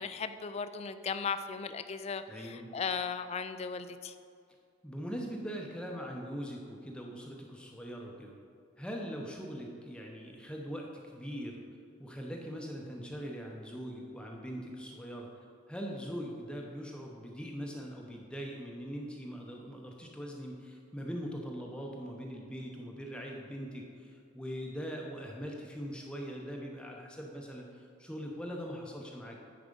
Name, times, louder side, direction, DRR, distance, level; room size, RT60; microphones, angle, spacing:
voice 1, 0.0-4.2, left 6 dB, 30° left, 11 dB, 0.3 m, -37 dB
voice 2, 2.3-2.6 4.8-8.3 8.8-11.6 12.0-15.4 15.7-29.4, equal, 5° left, -1 dB, 0.7 m, -41 dB
9.7 x 4.8 x 5.3 m, 2.3 s
head